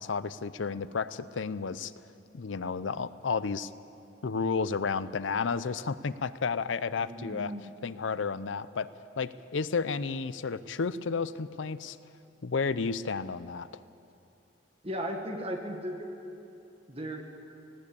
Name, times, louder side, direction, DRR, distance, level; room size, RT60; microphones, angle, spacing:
voice 1, 0.0-1.9 2.3-3.7 4.2-7.5 7.8-8.9 9.2-12.0 12.4-13.8, left 5 dB, 80° left, 15 dB, 0.6 m, -32 dB
voice 2, 7.0-7.7 14.8-16.1 16.9-17.2, equal, 30° right, 3 dB, 1.7 m, -36 dB
18.5 x 16.5 x 8.5 m, 2.8 s
head